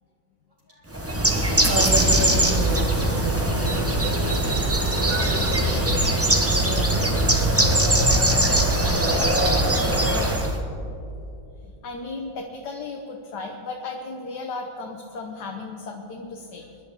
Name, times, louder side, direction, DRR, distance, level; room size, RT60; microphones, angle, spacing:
Bird, 0.9-10.6, right 1 dB, 10° right, 0.6 m, -21 dB
voice 1, 1.6-4.4 4.9-6.0 6.6-8.2 8.8-10.4, right 1 dB, 45° right, -5 dB, 2.2 m, -32 dB
voice 2, 11.6-16.8, left 3 dB, 65° left, 1 dB, 1.6 m, -35 dB
25.5 x 11.5 x 3.6 m, 2.6 s
omnidirectional pair, 2.0 m